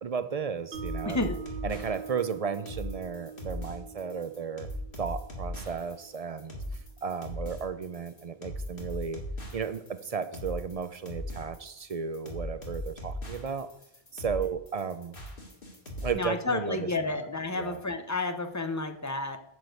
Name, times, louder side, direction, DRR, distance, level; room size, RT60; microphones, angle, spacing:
voice 1, 0.0-1.3 1.6-4.7 5.0-6.6 7.0-9.2 9.5-13.7 14.1-15.2 16.0-17.2 17.5-17.8, right 6 dB, 45° right, 12 dB, 0.5 m, -34 dB
sound 1, 0.7-16.1, equal, 60° left, 2.3 m, -39 dB
Mallet percussion, 0.7-6.9, right 6 dB, 70° right, 1.2 m, -44 dB
voice 2, 1.0-1.4 16.1-19.4, left 2 dB, 20° left, 7 dB, 0.7 m, -31 dB
9.4 x 4.8 x 7.7 m, 0.79 s
omnidirectional pair, 1.0 m